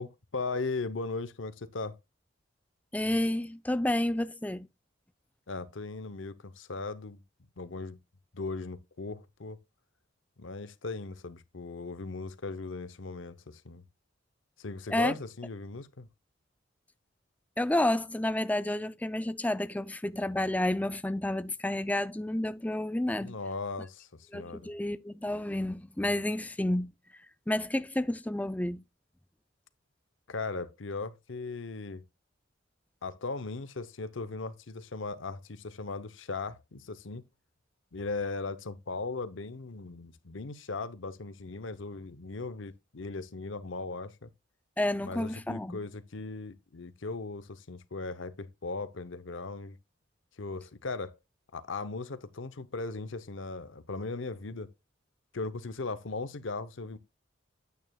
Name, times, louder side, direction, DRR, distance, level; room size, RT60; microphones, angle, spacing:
voice 1, 0.0-2.0 5.5-7.2 7.6-8.0 8.3-9.6 10.4-13.8 14.6-16.1 23.2-24.7 30.3-32.0 33.0-37.2 37.9-44.3 45.0-49.8 50.4-51.2 51.5-54.7 55.3-57.0, left 3 dB, 75° left, 0.8 m, -38 dB
voice 2, 2.9-4.7 14.9-15.2 17.6-23.4 24.3-26.9 27.5-28.8 44.8-45.8, left 1 dB, 10° left, 0.4 m, -30 dB
9.2 x 8.9 x 2.3 m
head